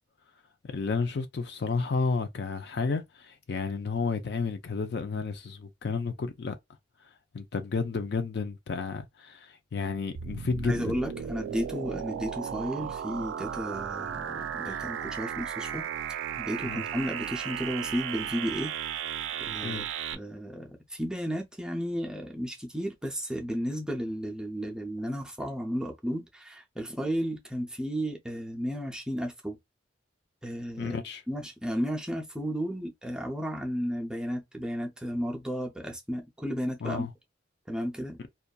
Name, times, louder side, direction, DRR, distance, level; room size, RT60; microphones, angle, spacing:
voice 1, 0.6-6.5 7.3-10.9 14.7-14.8 16.6-16.8 19.6-19.9 30.8-31.2 36.8-37.1, left 4 dB, 60° left, 0.4 m, -31 dB
sound 1, 10.2-20.2, right 8 dB, 85° right, 0.3 m, -35 dB
voice 2, 10.6-15.9 16.4-18.7 19.4-19.8 20.1-29.6 30.4-31.0 31.3-37.1 37.7-38.2, equal, 5° right, 0.5 m, -33 dB
2.6 x 2.3 x 2.2 m
head